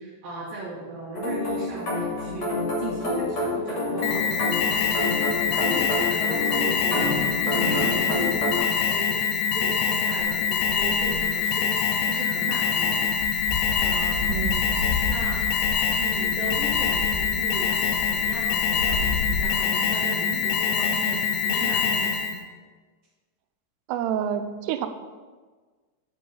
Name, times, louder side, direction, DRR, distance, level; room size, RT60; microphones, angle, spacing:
voice 1, 0.0-13.1 13.8-14.3 15.1-15.4 15.9-17.7 18.1-22.2, right 2 dB, 50° right, -7 dB, 2.1 m, -37 dB
sound 1, 1.1-8.6, left 2 dB, 35° left, 3.0 m, -28 dB
Alarm, 4.0-22.4, left 6 dB, 85° left, 1.8 m, -24 dB
sound 2, 10.2-11.4 12.1-12.2 12.5-19.4, left 3 dB, 55° left, 2.8 m, -32 dB
voice 2, 14.3-14.8 23.9-24.9, right 9 dB, 90° right, 9 dB, 2.7 m, -28 dB
9.5 x 6.3 x 5.6 m, 1.4 s
omnidirectional pair, 4.7 m